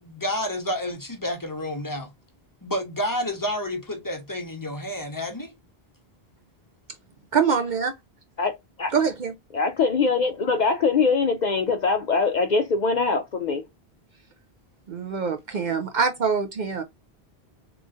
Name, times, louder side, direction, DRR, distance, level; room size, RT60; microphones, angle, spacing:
voice 1, 0.0-2.1 2.6-5.5, left 1 dB, 20° left, 0.8 m, -30 dB
voice 2, 7.3-7.9 8.9-9.3 14.9-16.8, right 6 dB, 55° right, 0.6 m, -24 dB
voice 3, 8.4-8.9 9.5-13.7, left 4 dB, 55° left, 0.6 m, -23 dB
3.7 x 3.0 x 2.5 m
omnidirectional pair, 1.1 m